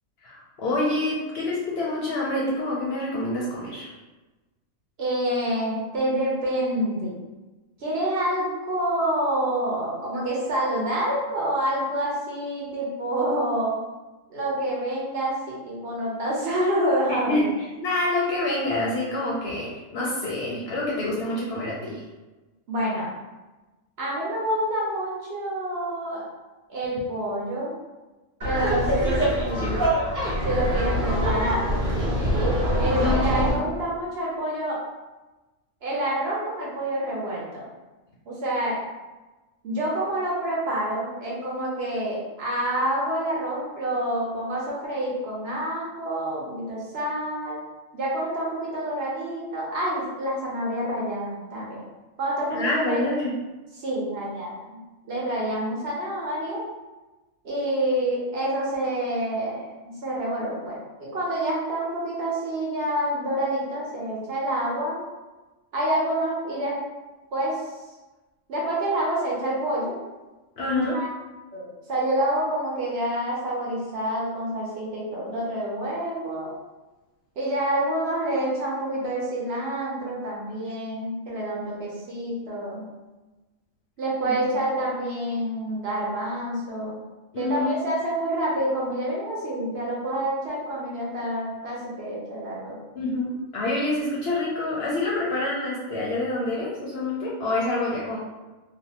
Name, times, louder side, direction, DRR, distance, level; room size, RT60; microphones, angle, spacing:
voice 1, 0.2-3.9 17.1-22.0 33.0-33.6 52.5-53.4 70.6-71.0 84.2-84.6 87.3-87.8 93.0-98.2, left 2 dB, 65° left, -5 dB, 0.7 m, -27 dB
voice 2, 5.0-7.1 7.8-13.8 14.3-17.5 22.7-23.1 24.0-26.2 26.7-27.7 28.4-29.8 30.4-31.7 32.8-34.8 35.8-37.7 38.3-38.8 39.6-47.6 47.9-51.8 52.2-53.1 53.8-54.5 55.1-56.6 57.4-65.0 65.7-66.8 67.3-67.6 68.5-70.0 70.8-71.1 71.5-76.5 77.4-82.9 84.0-87.0 87.4-92.8, right 1 dB, 60° right, -5 dB, 0.8 m, -27 dB
Laughter, 28.4-33.5, equal, 25° right, 0.4 m, -24 dB
2.6 x 2.0 x 2.7 m, 1.2 s
omnidirectional pair, 1.4 m